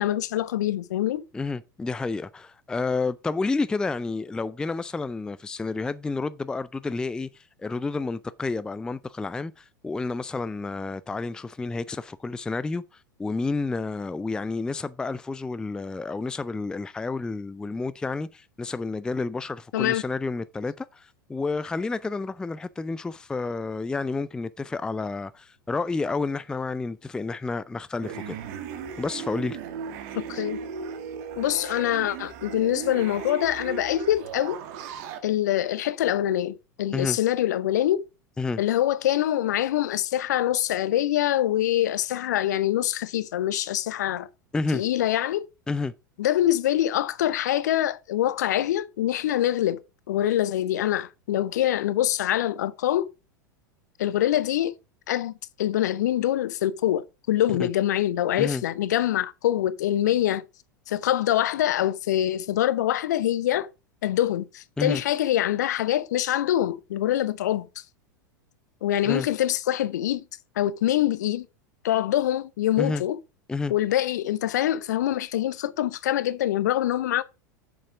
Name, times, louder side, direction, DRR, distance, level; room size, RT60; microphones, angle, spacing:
voice 1, 0.0-1.2 19.7-20.0 30.3-30.6 31.4-34.6 35.2-38.0 38.6-44.3 44.7-45.5 46.2-49.8 50.1-53.1 54.0-54.7 55.1-55.3 55.6-60.4 60.9-63.7 64.0-67.7 68.8-70.2 70.6-71.5 71.8-73.2 73.7-77.2, left 12 dB, 60° left, 0.7 m, -24 dB
voice 2, 1.3-28.4 29.0-29.6 36.9-37.2 38.4-38.6 44.5-44.8 45.7-45.9 57.6-57.7 58.4-58.6 64.8-65.0 69.1-69.3 72.8-73.0 73.5-73.7, left 3 dB, 5° left, 0.4 m, -30 dB
sound 1, 28.0-35.2, right 7 dB, 45° right, 1.6 m, -36 dB
7.4 x 7.1 x 4.8 m
figure-of-eight pair, 85°, 11 cm